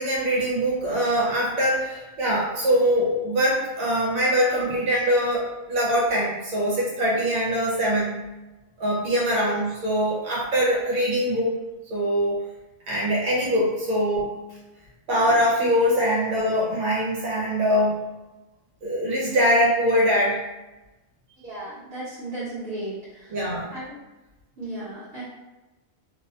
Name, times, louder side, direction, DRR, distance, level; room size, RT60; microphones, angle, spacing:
voice 1, 0.0-8.2 8.8-11.6 11.9-12.4 12.9-14.3 15.1-18.0 18.8-20.4 23.3-23.7, equal, 80° right, -4 dB, 1.1 m, -23 dB
voice 2, 21.4-23.3 23.7-24.0 24.6-25.2, right 1 dB, 50° right, -12 dB, 1.0 m, -35 dB
2.7 x 2.1 x 2.7 m, 1.1 s
omnidirectional pair, 1.4 m